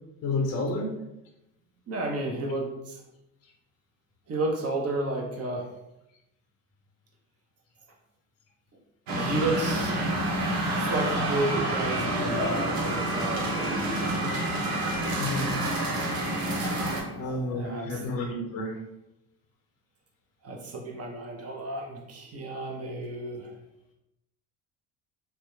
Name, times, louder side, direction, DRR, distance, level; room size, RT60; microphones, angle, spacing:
voice 1, 0.2-0.9 12.3-12.5 15.2-15.7 17.2-18.8, left 2 dB, 35° left, 0 dB, 0.5 m, -30 dB
voice 2, 1.9-3.0 4.3-5.7 9.1-10.0 10.7-14.3 16.7-18.0 20.4-23.6, right 2 dB, 35° right, 0 dB, 0.6 m, -32 dB
sound 1, 9.1-17.0, right 1 dB, 70° right, 0.7 m, -28 dB
2.7 x 2.1 x 2.3 m, 0.87 s
hypercardioid pair, 60°, 45 cm